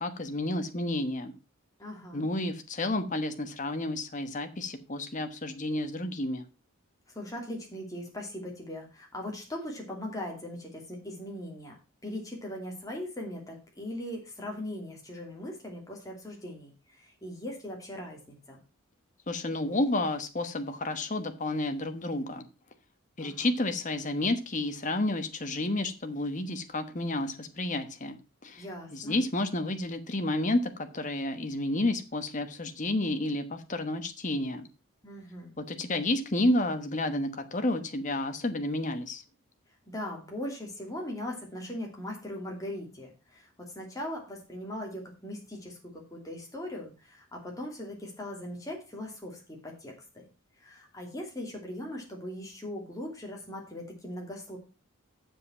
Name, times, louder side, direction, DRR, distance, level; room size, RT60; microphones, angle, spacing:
voice 1, 0.0-1.3 2.1-6.4 19.3-22.4 23.2-28.2 28.4-28.6 28.9-34.7 35.6-39.2, left 1 dB, 35° left, 8 dB, 1.1 m, -30 dB
voice 2, 1.8-2.3 7.1-11.8 12.0-18.6 23.2-23.5 28.6-29.2 35.0-35.5 39.9-50.2 50.6-54.6, left 1 dB, 15° left, 0 dB, 2.7 m, -40 dB
7.5 x 7.4 x 5.6 m, 0.31 s
head